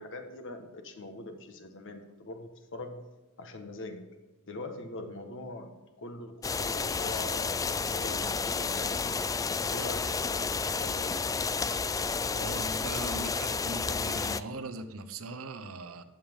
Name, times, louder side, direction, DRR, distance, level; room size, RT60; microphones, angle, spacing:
voice 1, 0.0-3.0 3.4-4.1 4.5-7.5 7.9-9.1 9.7-11.2, left 2 dB, 60° left, 6 dB, 1.5 m, -42 dB
sound 1, 6.4-14.4, left 5 dB, 15° left, 0.3 m, -31 dB
voice 2, 12.3-16.0, right 2 dB, 70° right, 10 dB, 0.9 m, -40 dB
14.0 x 9.2 x 3.7 m, 1.3 s
head